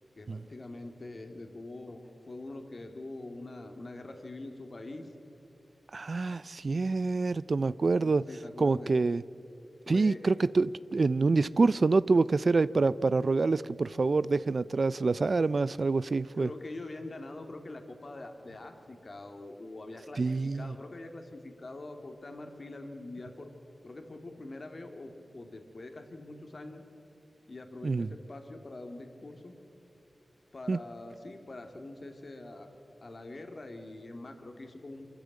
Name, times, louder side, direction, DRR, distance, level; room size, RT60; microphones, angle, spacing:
voice 1, 0.2-5.1 8.0-8.9 9.9-10.3 16.3-23.5 23.8-26.8 27.5-29.6 30.5-32.7 33.0-35.1, left 2 dB, 55° left, 5 dB, 2.2 m, -44 dB
voice 2, 5.9-8.3 8.6-9.2 9.9-16.5 20.2-20.7 27.8-28.1 30.7-30.8, right 3 dB, 60° right, 17 dB, 0.4 m, -26 dB
24.0 x 14.0 x 8.4 m, 2.7 s
cardioid pair, 45°, 0 cm